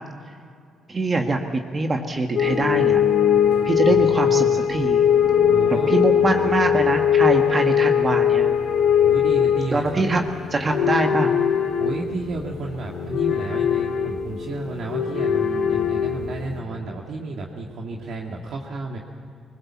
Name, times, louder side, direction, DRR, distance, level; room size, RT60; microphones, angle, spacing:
voice 1, 0.9-3.0 3.4-5.1 5.9-8.6 9.7-10.2 10.5-11.3, right 2 dB, 35° right, 3 dB, 1.6 m, -23 dB
sound 1, 2.4-16.6, left 8 dB, 70° left, 1.7 m, -21 dB
voice 2, 3.8-4.6 5.5-5.9 9.0-10.0 11.8-19.0, right 3 dB, 65° right, -1 dB, 1.9 m, -32 dB
21.0 x 20.0 x 7.4 m, 2.3 s
cardioid pair, 90°, 0 cm